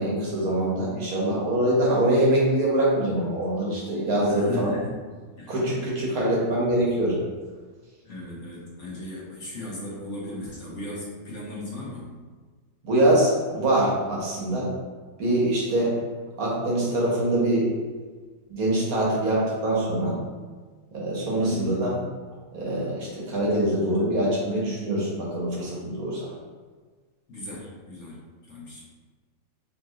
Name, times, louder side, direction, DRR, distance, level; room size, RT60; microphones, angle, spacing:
voice 1, 0.0-4.7 5.5-7.2 12.8-14.7 15.2-15.9 16.4-17.8 18.5-20.2 20.9-21.9 22.5-26.3, right 1 dB, 80° right, -5 dB, 1.6 m, -24 dB
voice 2, 4.3-4.9 5.4-5.5 8.0-12.1 21.4-21.8 27.3-28.2 28.5-28.8, left 2 dB, 55° left, -6 dB, 1.4 m, -36 dB
4.4 x 3.9 x 2.4 m, 1.4 s
omnidirectional pair, 1.5 m